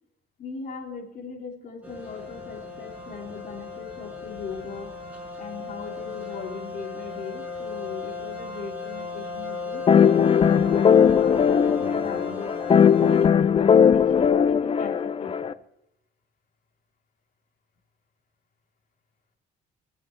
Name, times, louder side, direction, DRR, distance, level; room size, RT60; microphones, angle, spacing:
voice 1, 0.4-4.9 5.4-12.6 13.0-15.6, left 5 dB, 55° left, 0 dB, 3.8 m, -39 dB
sound 1, 1.8-13.3, left 4 dB, 10° right, 6.4 m, -36 dB
sound 2, 9.9-15.5, left 7 dB, 35° left, 0.6 m, -19 dB
20.5 x 8.9 x 4.5 m, 0.83 s
cardioid pair, 110°, 17 cm